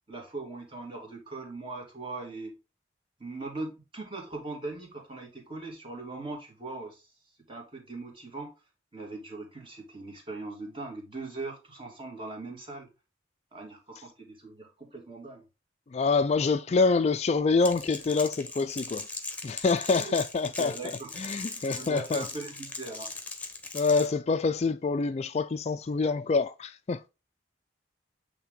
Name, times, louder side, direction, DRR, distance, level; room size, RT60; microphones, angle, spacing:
voice 1, 0.1-2.6 3.2-7.1 7.5-8.5 8.9-12.9 13.5-15.4 19.9-20.1 20.6-21.5 21.7-23.1, right 3 dB, 30° right, 2.3 m, -40 dB
voice 2, 15.9-19.1 19.4-20.7 21.2-22.2 23.7-27.1, left 4 dB, 35° left, 0.3 m, -26 dB
Crackle, 17.6-24.1, left 3 dB, 10° left, 1.2 m, -39 dB
8.6 x 3.5 x 3.7 m
head